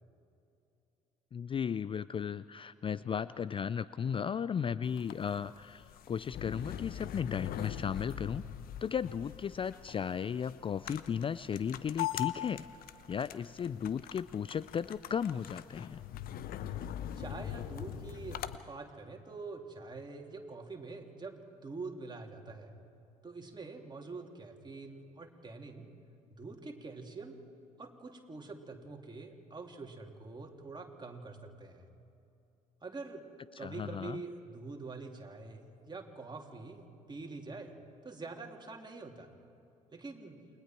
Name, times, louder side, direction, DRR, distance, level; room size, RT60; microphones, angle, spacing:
voice 1, 1.3-8.4 8.8-12.7 13.1-16.0 33.6-34.2, left 7 dB, 30° left, 17 dB, 0.4 m, -35 dB
sound 1, 4.8-18.6, left 11 dB, 60° left, 0.9 m, -42 dB
voice 2, 17.2-18.4 18.7-22.7 23.2-25.9 26.4-27.4 27.8-31.8 32.8-33.2 33.6-37.7 38.0-39.3 39.9-40.4, right 3 dB, 25° right, 1 dB, 3.2 m, -45 dB
29.0 x 21.5 x 4.6 m, 2.7 s
hypercardioid pair, 50°, 17 cm